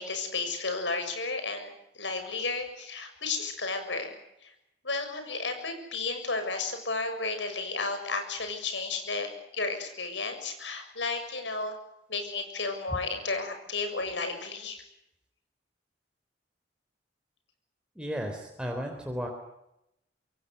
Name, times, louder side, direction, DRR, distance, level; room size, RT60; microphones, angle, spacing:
voice 1, 0.0-4.1 4.4-4.5 4.8-9.3 9.5-11.7 12.1-14.8, left 3 dB, 80° left, 7 dB, 6.8 m, -33 dB
voice 2, 18.0-19.3, equal, 5° right, 1 dB, 3.5 m, -34 dB
26.5 x 22.0 x 8.1 m, 0.85 s
head